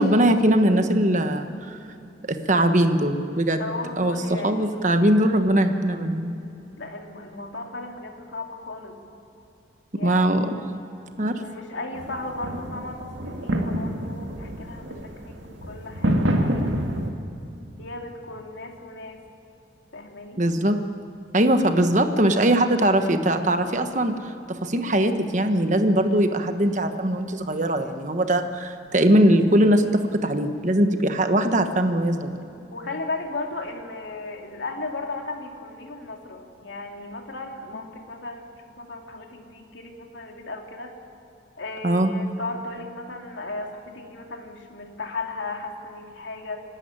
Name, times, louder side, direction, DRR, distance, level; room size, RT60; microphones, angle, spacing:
voice 1, 0.0-1.8 2.3-3.7 4.0-4.2 4.4-6.3 10.0-10.5 11.2-11.4 20.4-20.8 21.3-32.4 41.8-42.1, right 1 dB, 40° right, 7 dB, 1.3 m, -21 dB
voice 2, 3.6-5.0 6.8-9.0 9.9-10.8 11.4-17.1 17.8-19.2 19.9-20.4 32.7-40.9 41.6-46.6, left 3 dB, 80° left, 2 dB, 2.7 m, -36 dB
sound 1, 11.9-17.1, equal, 80° right, 2.1 m, -27 dB
27.0 x 12.0 x 8.9 m, 2.8 s
head